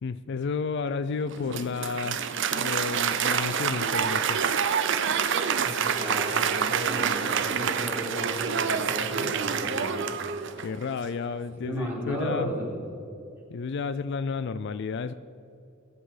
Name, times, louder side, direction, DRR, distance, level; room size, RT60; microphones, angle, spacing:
voice 1, 0.0-4.4 9.2-9.4 10.6-12.6 13.5-15.1, left 5 dB, 55° left, 14 dB, 0.4 m, -32 dB
Applause, 1.3-10.8, right 7 dB, 60° right, 0.8 m, -27 dB
voice 2, 5.6-10.1 11.5-12.8, equal, 10° right, -5 dB, 3.8 m, -34 dB
22.0 x 7.6 x 5.0 m, 2.6 s
head